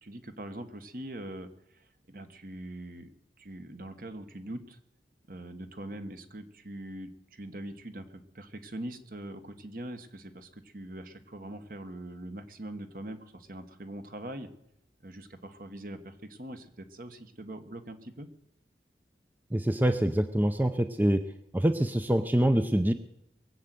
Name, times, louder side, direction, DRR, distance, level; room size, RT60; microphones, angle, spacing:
voice 1, 0.0-3.1 3.4-4.8 5.3-14.5 15.0-18.3, right 1 dB, 50° right, 8 dB, 1.3 m, -42 dB
voice 2, 19.5-22.9, right 1 dB, 10° right, 9 dB, 0.5 m, -25 dB
21.5 x 8.0 x 7.6 m, 0.78 s
head